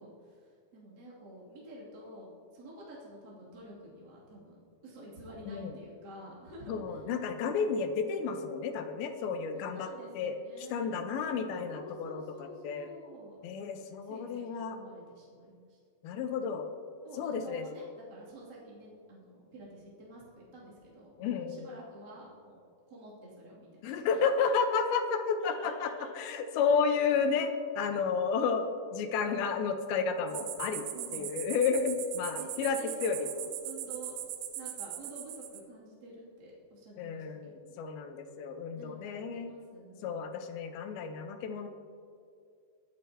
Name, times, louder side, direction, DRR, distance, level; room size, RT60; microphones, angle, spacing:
voice 1, 0.0-7.0 9.5-11.2 11.7-15.8 17.0-24.0 25.4-26.1 30.2-30.5 30.9-31.5 32.4-34.2 34.5-37.8 38.7-40.1, right 1 dB, 30° right, -6 dB, 2.8 m, -50 dB
voice 2, 6.7-9.9 10.1-10.4 10.7-12.9 13.4-14.8 16.0-16.7 17.2-17.7 21.2-21.7 23.8-28.7 28.9-30.8 31.1-33.3 37.0-39.5 40.0-41.7, left 5 dB, 90° left, 6 dB, 2.8 m, -31 dB
sound 1, 30.3-35.6, right 11 dB, 85° right, 2.8 m, -40 dB
22.0 x 9.7 x 2.9 m, 2.3 s
omnidirectional pair, 4.3 m